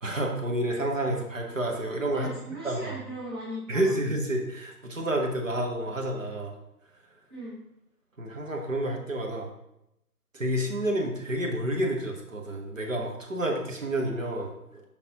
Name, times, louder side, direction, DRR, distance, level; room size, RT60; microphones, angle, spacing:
voice 1, 0.0-2.3 2.6-2.9 3.7-6.5 8.2-9.5 10.3-14.5, right 1 dB, 55° right, 1 dB, 1.2 m, -29 dB
voice 2, 2.1-4.0 7.3-7.6, equal, 15° right, -9 dB, 0.9 m, -38 dB
6.6 x 5.3 x 2.9 m, 0.83 s
figure-of-eight pair, 155°, 47 cm